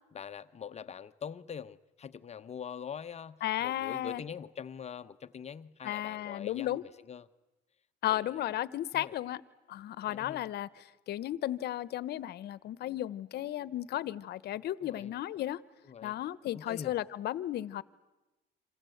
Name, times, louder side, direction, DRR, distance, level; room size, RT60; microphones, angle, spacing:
voice 1, 0.1-7.3 8.1-8.5 8.9-9.2 10.1-10.5 14.8-15.1 15.8-16.2 16.5-17.0, left 7 dB, 35° left, 0.9 m, -44 dB
voice 2, 3.4-4.2 5.8-6.8 8.0-9.4 9.7-10.7 11.1-15.6 16.0-17.8, left 13 dB, 65° left, 1.1 m, -34 dB
27.5 x 27.0 x 8.0 m
cardioid pair, 95°, 19 cm